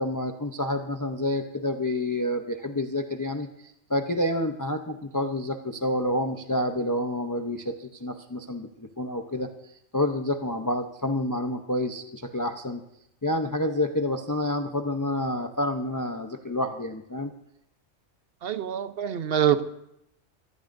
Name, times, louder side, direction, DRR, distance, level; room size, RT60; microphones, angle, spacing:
voice 1, 0.0-9.5 9.9-12.8 13.2-17.3, left 1 dB, 20° left, 5 dB, 0.5 m, -28 dB
voice 2, 18.4-19.6, right 10 dB, 55° right, 11 dB, 0.8 m, -25 dB
21.0 x 15.0 x 2.6 m, 0.78 s
omnidirectional pair, 1.4 m